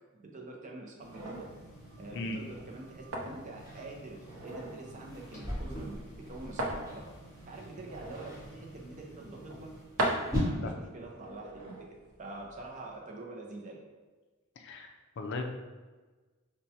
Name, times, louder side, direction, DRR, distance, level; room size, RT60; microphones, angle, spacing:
voice 1, 0.1-1.5 2.0-7.0 7.5-9.7 10.2-11.9 12.2-13.8, right 2 dB, 35° right, 0 dB, 0.5 m, -46 dB
sound 1, 1.0-9.8, right 1 dB, 35° left, 0.9 m, -51 dB
sound 2, 1.1-13.0, right 1 dB, 80° right, 0.6 m, -41 dB
sound 3, 3.6-10.4, left 1 dB, 15° right, 1.3 m, -42 dB
voice 2, 14.6-15.4, left 2 dB, 55° left, 4 dB, 0.4 m, -37 dB
4.4 x 2.2 x 2.7 m, 1.3 s
head